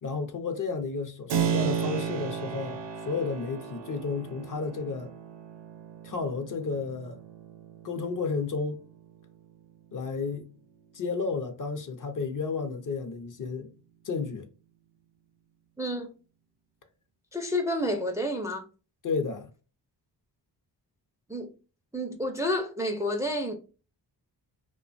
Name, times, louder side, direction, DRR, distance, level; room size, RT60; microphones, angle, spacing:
voice 1, 0.0-5.1 6.0-7.2 7.8-8.8 9.9-10.5 10.9-13.7 14.0-14.5 19.0-19.5, left 4 dB, 45° left, 0.6 m, -32 dB
Keyboard (musical), 1.3-9.9, right 7 dB, 65° right, 0.5 m, -34 dB
voice 2, 15.8-16.1 17.3-18.6 21.3-21.5 21.9-23.5, left 1 dB, 5° right, 0.4 m, -29 dB
2.4 x 2.2 x 2.4 m
cardioid pair, 50°, 44 cm